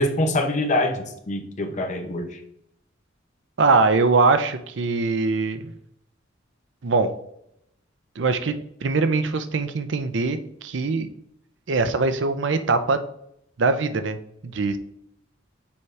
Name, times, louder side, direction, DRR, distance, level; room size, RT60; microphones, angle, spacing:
voice 1, 0.0-2.4, left 1 dB, 40° left, 4 dB, 0.8 m, -24 dB
voice 2, 3.6-5.7 6.8-7.1 8.2-8.5 8.8-11.1 11.7-13.0 13.6-14.2 14.4-14.8, right 3 dB, 65° right, 10 dB, 0.5 m, -22 dB
7.0 x 4.8 x 3.2 m, 0.74 s
head